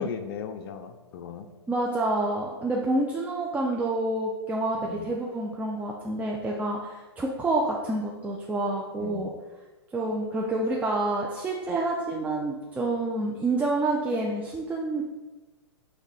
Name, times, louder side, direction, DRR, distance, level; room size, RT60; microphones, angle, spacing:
voice 1, 0.0-1.5 4.8-5.1 9.0-9.3, left 7 dB, 55° left, 8 dB, 0.4 m, -37 dB
voice 2, 1.7-9.3 9.9-15.0, right 2 dB, 10° right, -3 dB, 0.3 m, -28 dB
4.6 x 2.1 x 3.6 m, 1.2 s
hypercardioid pair, 115°, 15 cm